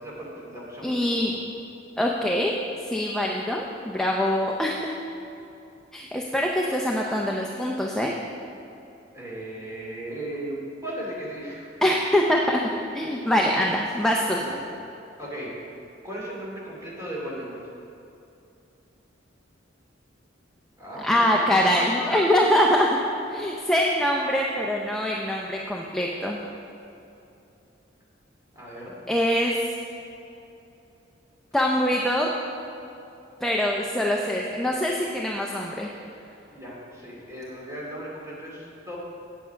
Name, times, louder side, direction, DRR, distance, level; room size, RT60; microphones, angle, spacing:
voice 1, 0.0-1.4 9.1-11.9 13.0-13.2 14.4-14.6 15.2-15.5 16.0-17.6 20.8-21.5 21.7-22.2 28.5-28.9 36.5-39.0, right 1 dB, 15° right, -6 dB, 2.5 m, -36 dB
voice 2, 0.8-1.3 2.0-2.6 2.8-4.9 5.9-8.1 11.8-12.6 12.9-14.4 21.0-22.9 23.2-26.4 29.1-29.6 31.5-32.3 33.4-35.9, left 1 dB, 5° left, -2 dB, 0.5 m, -24 dB
8.4 x 7.9 x 5.7 m, 2.7 s
head